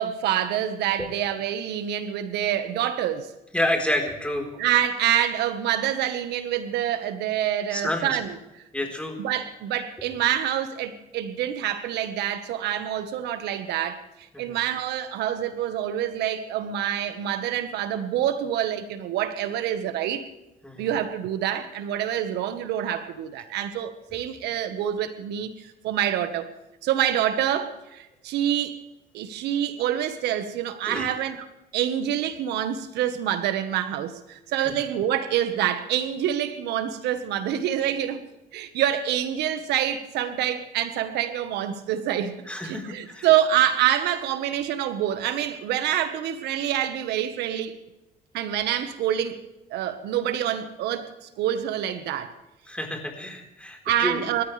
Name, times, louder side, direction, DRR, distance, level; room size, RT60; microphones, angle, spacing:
voice 1, 0.0-3.3 4.5-8.4 9.2-20.3 20.8-26.5 26.8-28.8 29.1-31.4 31.7-38.2 38.5-47.7 48.3-49.4 49.7-52.3 53.8-54.4, right 10 dB, 80° right, 1.5 m, -26 dB
voice 2, 3.5-4.5 7.7-8.2 8.7-9.2 14.3-14.6 20.6-20.9 30.8-31.1 34.6-34.7 42.5-43.3 52.7-54.2, left 1 dB, 5° left, 4.3 m, -29 dB
29.0 x 14.0 x 3.4 m
cardioid pair, 110°, 17 cm